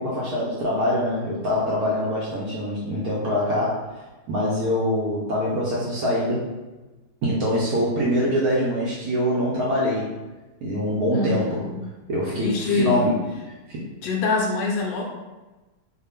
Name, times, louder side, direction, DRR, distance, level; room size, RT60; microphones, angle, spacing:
voice 1, 0.0-3.9 4.3-6.5 7.2-10.1 10.6-11.7 12.1-13.9, equal, 65° right, -6 dB, 0.9 m, -24 dB
voice 2, 11.1-11.9 12.4-13.0 14.0-15.1, left 4 dB, 75° left, 0 dB, 1.2 m, -25 dB
4.0 x 2.1 x 3.4 m, 1.2 s
omnidirectional pair, 2.2 m